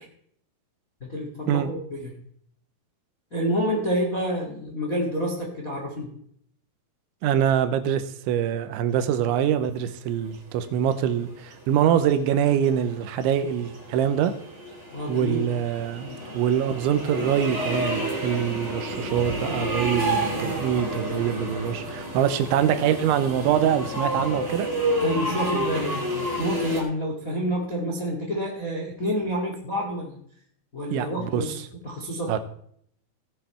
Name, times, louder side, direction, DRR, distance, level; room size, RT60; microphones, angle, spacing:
voice 1, 1.0-2.1 3.3-6.1 14.9-15.5 16.0-16.2 25.0-30.2 30.7-31.5 31.8-32.3, equal, 45° left, 0 dB, 1.0 m, -28 dB
voice 2, 7.2-14.3 15.1-16.1 16.3-24.7 30.9-31.4 32.3-32.4, right 9 dB, 85° right, 10 dB, 3.2 m, -24 dB
sound 1, 10.9-26.8, right 1 dB, 20° right, 2.6 m, -30 dB
17.5 x 7.8 x 4.4 m, 0.65 s
omnidirectional pair, 5.3 m